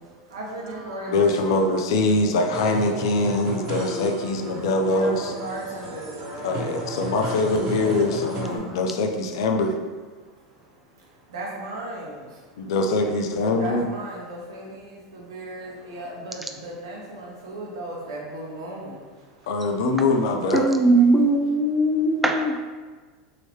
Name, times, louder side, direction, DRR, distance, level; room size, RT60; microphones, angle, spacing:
voice 1, 0.3-1.7 4.8-6.5 7.6-8.8 11.3-12.2 13.6-18.9, right 2 dB, 80° right, -2 dB, 1.0 m, -36 dB
voice 2, 1.1-5.3 6.4-9.8 12.6-13.9 19.5-20.7, left 2 dB, 75° left, 4 dB, 0.4 m, -23 dB
sound 1, 2.5-8.6, right 1 dB, 50° right, 1.1 m, -34 dB
voice 3, 20.5-22.6, right 2 dB, 5° right, 2 dB, 0.3 m, -19 dB
3.0 x 2.8 x 3.1 m, 1.4 s
hypercardioid pair, 105°, 3 cm